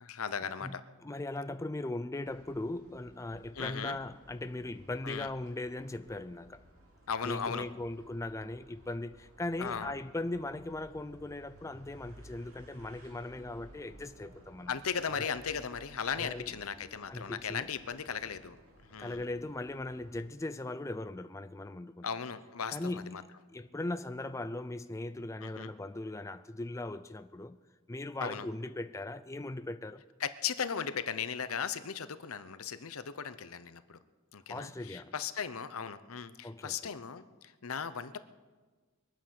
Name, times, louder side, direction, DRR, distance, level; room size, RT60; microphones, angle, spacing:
voice 1, 0.0-0.8 3.5-4.0 5.0-5.3 7.1-7.7 9.6-9.9 14.7-18.6 18.9-19.2 22.0-23.2 25.4-25.7 28.2-28.5 30.2-34.0 34.3-38.2, left 7 dB, 80° left, 0.8 m, -37 dB
voice 2, 0.6-6.6 7.2-14.7 15.1-15.3 16.2-16.5 17.1-17.7 19.0-22.1 22.7-27.6 27.9-30.0 34.5-35.1 36.4-36.9, left 2 dB, 15° left, 0.4 m, -39 dB
sound 1, 2.2-20.2, right 1 dB, 75° right, 2.6 m, -57 dB
22.5 x 9.3 x 6.5 m
head